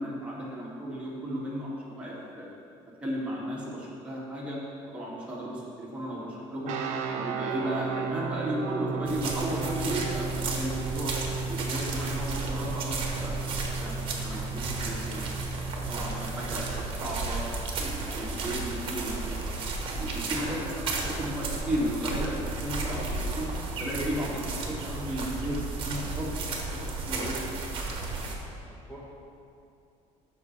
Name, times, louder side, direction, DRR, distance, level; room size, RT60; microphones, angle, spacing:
voice 1, 0.0-2.5 3.0-4.6 4.9-6.8 7.1-11.1 11.5-13.3 13.7-15.3 15.7-16.7 17.0-17.4 17.8-20.9 21.2-23.5 23.8-27.4, equal, 10° right, -7 dB, 2.3 m, -34 dB
sound 1, 6.7-16.8, right 5 dB, 70° right, 0.8 m, -35 dB
sound 2, 9.0-28.3, right 3 dB, 45° right, 1.3 m, -33 dB
voice 2, 16.5-16.8 28.9-29.0, right 1 dB, 15° left, -8 dB, 1.5 m, -49 dB
14.0 x 5.7 x 3.4 m, 2.5 s
cardioid pair, 145°, 13 cm